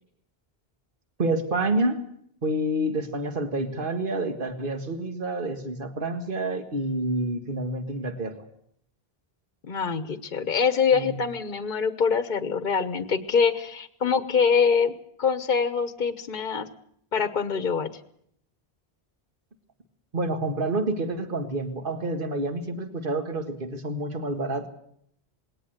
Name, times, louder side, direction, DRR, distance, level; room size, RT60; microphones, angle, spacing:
voice 1, 1.2-2.0 2.4-8.4 10.9-11.2 20.1-24.7, right 2 dB, 55° right, 7 dB, 2.0 m, -28 dB
voice 2, 9.7-14.9 15.2-16.7 17.1-17.9, left 6 dB, 55° left, 12 dB, 1.1 m, -24 dB
20.5 x 18.0 x 8.0 m, 0.67 s
omnidirectional pair, 1.0 m